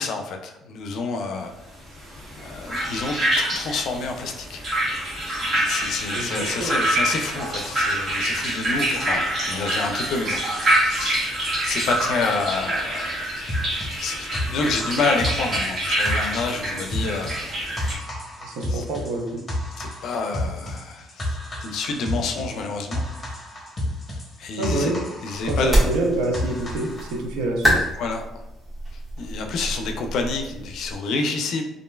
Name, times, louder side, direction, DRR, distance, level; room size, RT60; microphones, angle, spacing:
voice 1, 0.0-1.5 2.4-4.6 5.4-11.2 11.6-13.2 13.8-17.4 18.7-18.8 19.8-23.0 24.4-24.9 25.2-25.9 28.0-28.2 29.2-31.6, left 4 dB, 65° left, 4 dB, 0.4 m, -28 dB
sound 1, 2.0-17.9, right 1 dB, 40° right, 1.1 m, -26 dB
voice 2, 6.1-6.8 18.4-19.4 24.6-25.0 25.4-27.8, right 2 dB, 80° right, 1 dB, 0.6 m, -27 dB
sound 2, 13.5-27.2, left 1 dB, 25° left, 0.8 m, -31 dB
sound 3, 25.3-31.0, equal, 10° right, 1.3 m, -27 dB
3.1 x 2.5 x 2.2 m, 0.95 s
supercardioid pair, 85°, 0 cm